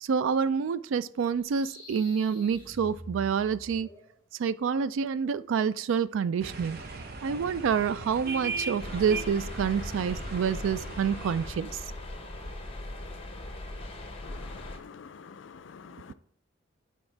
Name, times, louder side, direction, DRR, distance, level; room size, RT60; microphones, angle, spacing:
voice 1, 0.0-3.9 4.4-6.8 7.2-11.8, right 6 dB, 75° right, 0.3 m, -28 dB
sound 1, 1.3-4.1, equal, 10° left, 3.0 m, -47 dB
sound 2, 6.4-11.5, right 3 dB, 50° right, 0.7 m, -38 dB
sound 3, 8.8-14.8, left 1 dB, 30° left, 0.9 m, -39 dB
voice 2, 14.2-16.1, left 6 dB, 65° left, 0.4 m, -47 dB
9.6 x 4.6 x 3.3 m
head